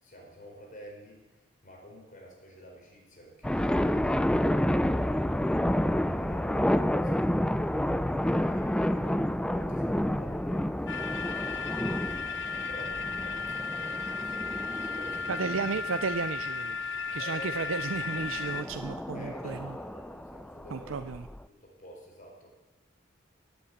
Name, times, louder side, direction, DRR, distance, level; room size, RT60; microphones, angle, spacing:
voice 1, 0.0-7.3 7.9-15.8 16.8-17.7 19.1-21.1 21.3-22.5, equal, 45° left, 0 dB, 4.3 m, -50 dB
sound 1, 3.4-16.4 17.9-21.4, left 1 dB, 5° left, 0.3 m, -30 dB
sound 2, 10.9-18.6, left 5 dB, 65° left, 1.0 m, -35 dB
voice 2, 15.3-16.8 17.1-19.7 20.7-21.2, right 5 dB, 90° right, 9 dB, 0.5 m, -33 dB
13.0 x 8.3 x 8.5 m, 1.1 s
head